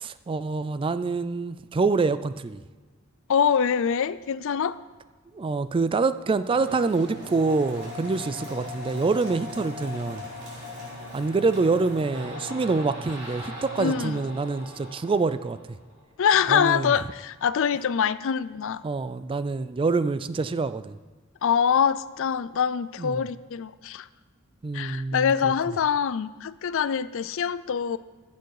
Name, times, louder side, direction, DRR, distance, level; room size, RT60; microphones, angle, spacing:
voice 1, 0.0-2.6 5.3-10.2 11.1-15.8 16.5-16.9 18.8-21.0 23.0-23.3 24.6-25.5, right 4 dB, 25° right, 13 dB, 0.3 m, -26 dB
voice 2, 3.3-4.8 13.8-14.2 16.2-18.8 21.4-24.1 24.7-28.0, left 7 dB, 60° left, 16 dB, 0.4 m, -24 dB
sound 1, 6.4-16.0, left 1 dB, 55° right, 3.9 m, -39 dB
15.0 x 7.1 x 4.8 m, 1.4 s
head